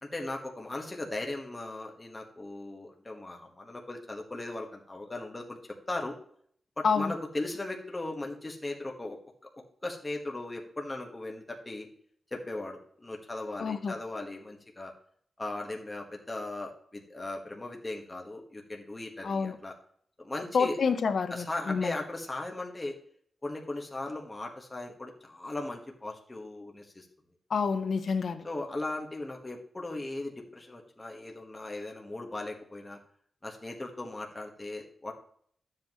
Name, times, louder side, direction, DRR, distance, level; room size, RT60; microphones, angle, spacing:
voice 1, 0.0-5.6 5.9-6.2 6.8-9.2 9.8-11.9 12.3-14.9 15.4-19.7 20.2-20.8 21.3-23.0 23.4-27.1 28.4-33.0 33.4-35.1, left 2 dB, 20° left, 1 dB, 1.3 m, -38 dB
voice 2, 13.6-14.0 19.2-19.6 20.5-22.0 27.5-28.4, left 5 dB, 65° left, 9 dB, 0.8 m, -28 dB
11.5 x 7.8 x 3.0 m, 0.62 s
wide cardioid pair, 135°, 0 cm